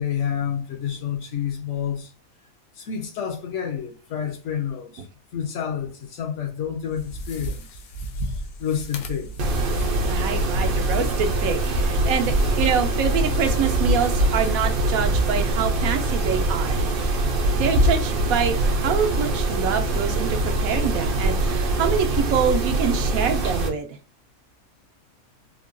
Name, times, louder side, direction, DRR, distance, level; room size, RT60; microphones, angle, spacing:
voice 1, 0.0-2.1 2.8-5.1 5.3-7.7 8.2-9.4, left 8 dB, 65° left, 0.9 m, -29 dB
sound 1, 6.8-17.0, right 2 dB, 90° left, 1.1 m, -35 dB
Mechanisms, 9.4-23.7, right 1 dB, 60° right, 0.6 m, -23 dB
voice 2, 10.0-17.1 17.5-23.9, right 7 dB, 80° right, 1.0 m, -26 dB
3.5 x 2.2 x 2.5 m
omnidirectional pair, 1.5 m